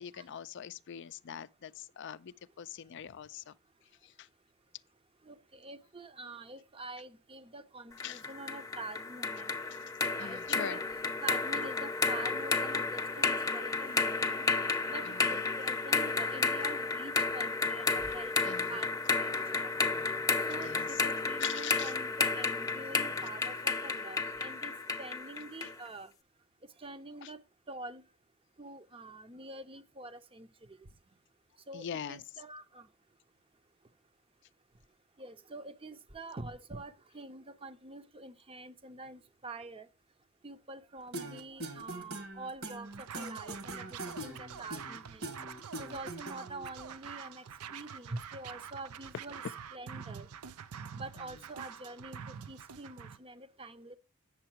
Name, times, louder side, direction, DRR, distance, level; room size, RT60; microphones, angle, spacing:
voice 1, 0.0-3.5 4.0-4.3 8.0-8.2 10.2-10.8 15.0-15.4 18.4-18.8 20.6-20.9 21.4-21.9 25.6-25.7 27.2-27.3 31.7-32.2 51.2-51.3, left 9 dB, 55° left, 0.4 m, -43 dB
voice 2, 5.2-9.6 10.0-10.8 11.2-14.5 14.9-18.9 19.2-19.7 20.5-24.7 25.0-26.1 26.8-27.4 27.7-28.0 28.6-30.5 31.7-32.9 35.2-39.9 40.4-45.3 45.8-47.4 47.7-49.4 49.7-50.3 50.9-54.0, right 2 dB, 25° right, 0.6 m, -46 dB
sound 1, 8.0-25.8, left 4 dB, 15° left, 0.7 m, -32 dB
sound 2, 41.1-46.7, right 1 dB, 65° right, 1.7 m, -42 dB
Scratching (performance technique), 42.9-53.2, right 7 dB, 85° right, 0.5 m, -46 dB
8.7 x 6.8 x 4.5 m
head